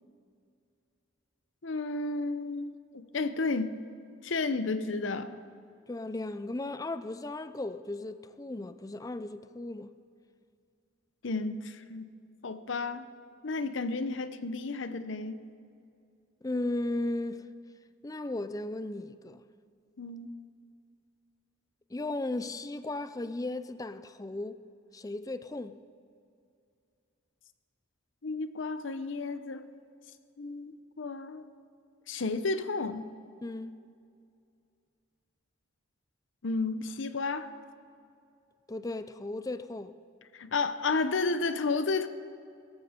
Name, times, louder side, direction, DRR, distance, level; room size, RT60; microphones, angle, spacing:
voice 1, 1.6-3.7 4.2-5.4 11.2-12.1 12.4-13.1 13.4-15.4 20.0-20.3 28.2-29.7 30.4-31.5 32.1-33.1 36.4-37.5 40.3-42.1, left 3 dB, 70° left, 0.7 m, -32 dB
voice 2, 5.9-9.9 16.4-17.5 18.0-19.4 21.9-24.6 24.9-25.8 33.4-33.8 38.7-40.0, left 2 dB, 20° left, 0.4 m, -36 dB
17.5 x 14.0 x 4.4 m
head